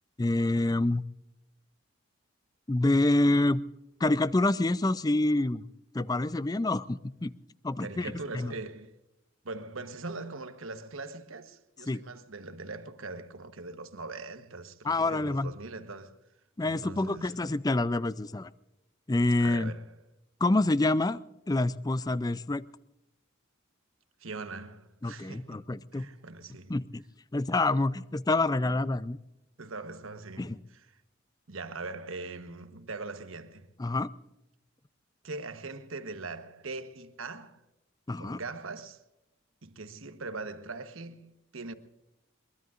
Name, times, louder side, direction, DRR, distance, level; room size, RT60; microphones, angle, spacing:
voice 1, 0.2-1.0 2.7-3.6 4.0-5.6 5.9-7.3 7.6-8.5 11.9-12.0 14.8-15.5 16.6-18.5 19.1-19.7 20.4-21.2 21.5-22.6 25.0-26.1 26.7-27.0 27.3-29.2 30.4-30.6 33.8-34.1 38.1-38.4, left 2 dB, 20° left, 0.4 m, -27 dB
voice 2, 7.8-8.9 9.4-16.2 16.6-17.3 19.4-19.9 24.2-25.6 25.9-26.8 29.6-31.0 31.5-33.7 35.2-37.6 38.2-39.0 39.6-41.7, right 3 dB, 75° right, 1.2 m, -41 dB
22.5 x 22.5 x 2.5 m
head